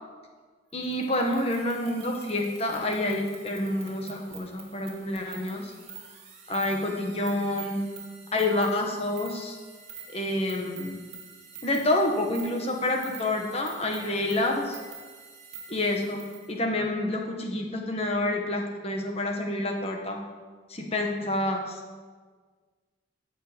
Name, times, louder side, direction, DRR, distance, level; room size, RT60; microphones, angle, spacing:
voice 1, 0.7-5.7 6.5-7.8 8.3-9.6 10.1-11.0 11.6-14.8 15.7-16.2 16.5-20.2 20.7-21.8, left 1 dB, 30° left, 2 dB, 1.6 m, -28 dB
sound 1, 0.8-16.5, right 6 dB, 35° right, 2.2 m, -46 dB
15.5 x 7.9 x 5.3 m, 1.5 s
head